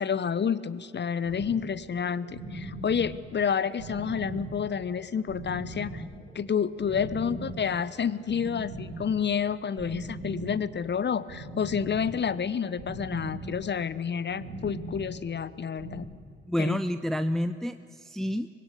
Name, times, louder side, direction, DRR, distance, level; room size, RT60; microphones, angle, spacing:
voice 1, 0.0-6.0 6.3-16.1 16.6-16.8, left 7 dB, 30° left, 17 dB, 1.0 m, -29 dB
sound 1, 1.2-16.0, right 2 dB, 75° right, 3.4 m, -40 dB
voice 2, 16.5-18.6, equal, ahead, 11 dB, 0.8 m, -29 dB
25.5 x 20.5 x 8.4 m, 2.5 s
figure-of-eight pair, 45°, 35 cm